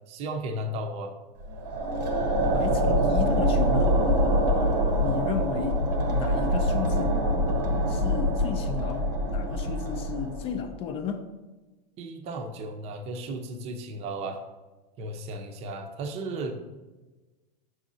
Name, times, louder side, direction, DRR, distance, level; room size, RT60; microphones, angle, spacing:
voice 1, 0.1-1.1 12.0-14.4 15.0-16.6, right 1 dB, 30° right, 5 dB, 0.7 m, -34 dB
sound 1, 1.4-10.7, equal, 80° right, 1.3 m, -25 dB
voice 2, 2.5-4.0 5.0-7.2 7.9-11.3, left 7 dB, 25° left, 6 dB, 0.4 m, -34 dB
6.7 x 6.2 x 2.7 m, 1.2 s
supercardioid pair, 150°, 21 cm